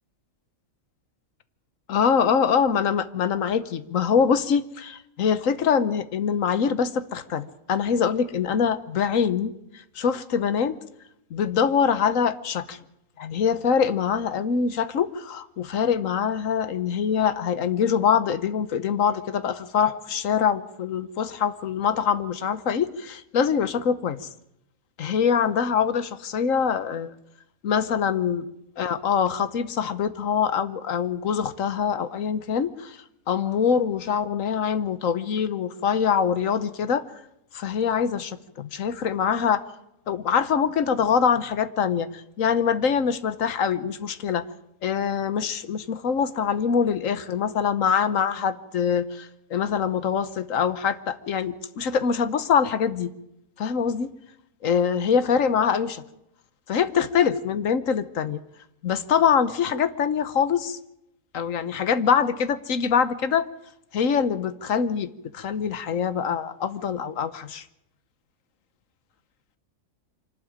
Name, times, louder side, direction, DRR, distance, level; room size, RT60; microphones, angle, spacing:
voice 1, 1.9-10.8 11.3-12.8 13.2-24.3 25.0-27.1 27.6-28.4 28.8-37.0 37.5-39.6 40.1-44.4 44.8-53.1 53.6-54.1 54.6-56.0 56.7-58.4 58.8-60.8 61.3-63.5 63.9-67.6, left 7 dB, 70° left, 14 dB, 1.3 m, -24 dB
25.0 x 12.5 x 9.0 m, 0.83 s
omnidirectional pair, 1.5 m